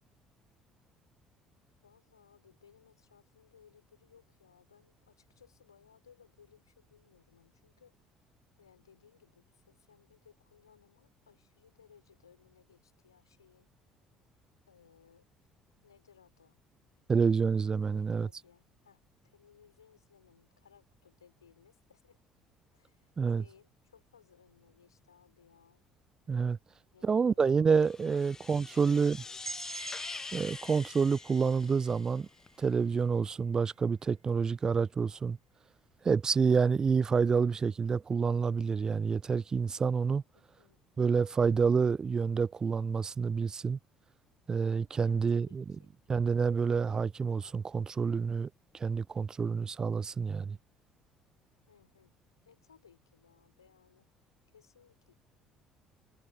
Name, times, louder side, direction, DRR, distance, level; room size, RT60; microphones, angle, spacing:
voice 1, 1.8-8.3 8.6-13.7 14.7-15.3 15.8-16.6 17.9-22.2 22.7-23.1 23.4-25.8 26.9-27.5 28.5-29.4 40.3-40.8 45.0-45.9 51.7-52.2 52.4-54.2 54.5-55.1, left 7 dB, 85° left, 5.5 m, -63 dB
voice 2, 17.1-18.3 23.2-23.4 26.3-26.6 27.0-29.2 30.3-32.3 32.6-35.4 36.0-40.2 41.0-43.8 44.5-45.6 46.1-50.6, right 5 dB, 30° right, 0.5 m, -28 dB
sound 1, 27.7-32.5, left 4 dB, 25° left, 0.5 m, -45 dB
sound 2, 29.4-33.3, right 4 dB, 90° right, 0.7 m, -47 dB
figure-of-eight pair, 55°, 2 cm